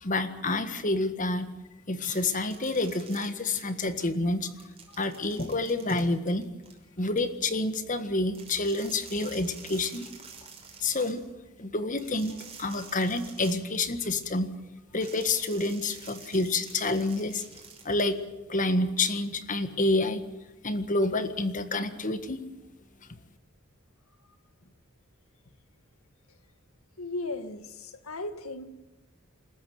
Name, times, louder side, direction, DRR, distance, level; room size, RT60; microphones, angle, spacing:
voice 1, 0.0-1.5 1.9-4.5 5.0-6.4 7.0-10.1 10.8-11.3 11.6-14.5 14.9-17.4 17.8-18.2 18.5-20.2 20.6-22.4, left 2 dB, 40° left, 10 dB, 1.6 m, -28 dB
sound 1, 2.0-4.0 4.3-7.2 8.3-11.2 12.0-14.4 15.0-18.1, right 6 dB, 30° right, 5.6 m, -49 dB
voice 2, 27.0-28.7, left 2 dB, 85° left, 9 dB, 1.9 m, -36 dB
28.0 x 14.0 x 9.3 m, 1.0 s
head